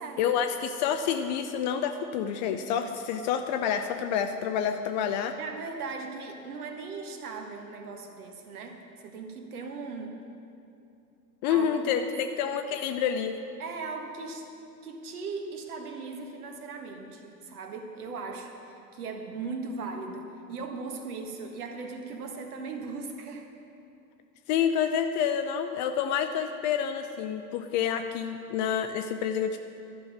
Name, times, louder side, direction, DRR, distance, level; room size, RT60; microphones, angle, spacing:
voice 1, 0.2-5.4 11.4-13.4 24.5-29.6, left 8 dB, 30° left, 7 dB, 0.4 m, -28 dB
voice 2, 5.4-10.2 11.5-12.1 13.6-14.5 14.8-23.5, right 4 dB, 60° right, 4 dB, 1.6 m, -38 dB
12.5 x 6.3 x 9.4 m, 2.7 s
figure-of-eight pair, 90°, 49 cm